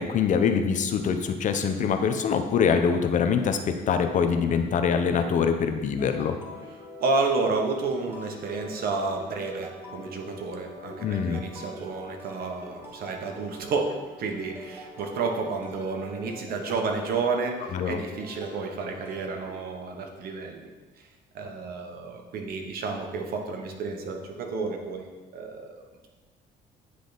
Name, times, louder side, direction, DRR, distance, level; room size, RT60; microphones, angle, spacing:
voice 1, 0.0-6.4 11.0-11.4 17.7-18.0, left 6 dB, 50° left, 7 dB, 0.6 m, -24 dB
sound 1, 6.0-19.7, left 1 dB, 15° right, 1.5 m, -45 dB
voice 2, 7.0-20.7 21.3-26.1, right 4 dB, 65° right, 3 dB, 1.1 m, -31 dB
9.5 x 3.4 x 4.0 m, 1.3 s
cardioid pair, 110°, 17 cm